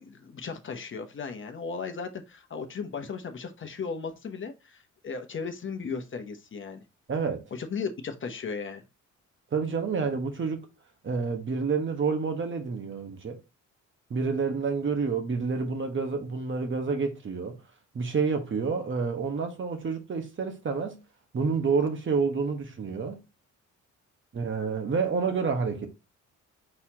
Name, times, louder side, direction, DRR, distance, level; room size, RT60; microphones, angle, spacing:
voice 1, 0.0-6.8 7.5-8.8, left 5 dB, 40° left, 1.0 m, -36 dB
voice 2, 7.1-7.5 9.5-10.7 11.0-13.4 14.1-17.6 17.9-21.0 21.3-23.2 24.3-25.9, right 5 dB, 40° right, 1.2 m, -28 dB
4.4 x 4.2 x 2.8 m
cardioid pair, 90°, 30 cm